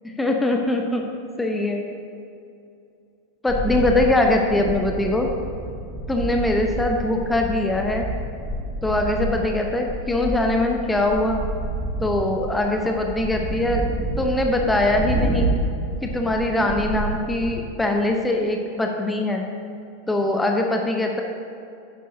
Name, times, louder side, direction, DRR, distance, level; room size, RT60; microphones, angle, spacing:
voice 1, 0.2-1.0 1.4-1.8 3.4-5.3 6.1-8.1 8.8-11.4 12.0-13.8 14.2-15.5 16.0-19.5 20.1-21.2, left 1 dB, 10° left, 2 dB, 0.9 m, -22 dB
sound 1, 3.5-17.6, right 1 dB, 25° right, 2.0 m, -29 dB
11.0 x 10.0 x 2.8 m, 2.6 s
figure-of-eight pair, 90°, 0 cm